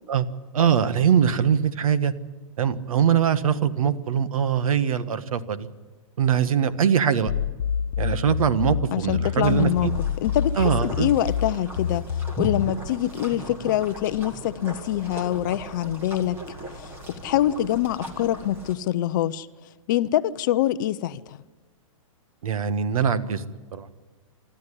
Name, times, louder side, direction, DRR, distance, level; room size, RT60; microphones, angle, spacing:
voice 1, 0.5-2.1 2.6-5.7 6.2-7.3 8.0-9.9 10.6-11.1 22.4-23.4 23.7-23.9, right 8 dB, 75° right, 1.5 m, -22 dB
sound 1, 7.3-12.7, left 8 dB, 70° left, 1.0 m, -27 dB
voice 2, 8.9-9.9 10.2-12.0 12.4-16.4 16.8-19.5 19.9-21.4, left 12 dB, 35° left, 0.6 m, -25 dB
sound 2, 9.4-18.8, equal, 15° right, 2.0 m, -38 dB
24.0 x 13.0 x 10.0 m
hypercardioid pair, 165°, 18 cm